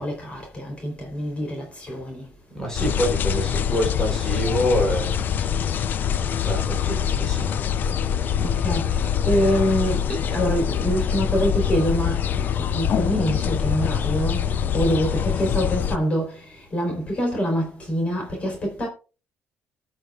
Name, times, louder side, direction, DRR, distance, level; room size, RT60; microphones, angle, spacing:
voice 1, 0.0-2.3 8.4-18.9, equal, 30° left, 3.6 m, -25 dB
voice 2, 2.5-5.7 6.4-7.6, equal, 15° left, 3.6 m, -26 dB
sound 1, 2.8-16.0, left 8 dB, 50° left, 0.5 m, -24 dB
18.5 x 6.5 x 2.4 m
cardioid pair, 120°, 4 cm